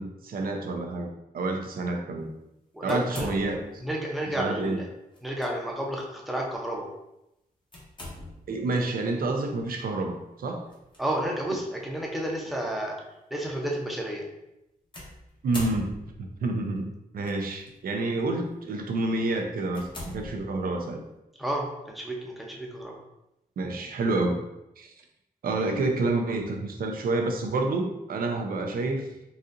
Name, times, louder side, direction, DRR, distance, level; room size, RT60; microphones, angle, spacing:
voice 1, 0.0-2.3 2.8-3.6 4.3-4.8 8.5-10.7 15.4-16.9 17.1-21.0 23.6-24.4 24.8-24.9 25.4-29.1, right 2 dB, 70° right, 3 dB, 0.5 m, -29 dB
voice 2, 2.7-3.3 3.8-4.9 5.2-6.9 11.0-13.0 13.3-14.3 21.4-23.0, right 1 dB, ahead, -1 dB, 0.7 m, -31 dB
sound 1, 2.9-3.9 5.1-5.5 6.0-6.1 7.7-8.6 10.7-11.0 11.8-11.9 14.9-16.3 17.2-17.7 18.3-18.5 19.0-19.1 19.7-20.9, left 1 dB, 35° left, 1.0 m, -41 dB
4.1 x 2.4 x 2.5 m, 0.89 s
cardioid pair, 95°, 15 cm